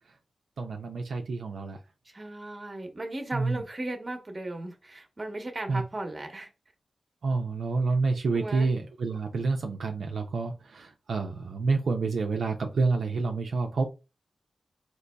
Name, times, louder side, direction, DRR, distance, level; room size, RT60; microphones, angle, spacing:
voice 1, 0.6-1.8 3.3-3.6 5.7-5.8 7.2-13.9, right 4 dB, 85° right, 0.4 m, -28 dB
voice 2, 2.1-6.5 8.3-8.7, right 2 dB, 35° right, 0.9 m, -36 dB
3.9 x 2.9 x 2.2 m
cardioid pair, 55°, 0 cm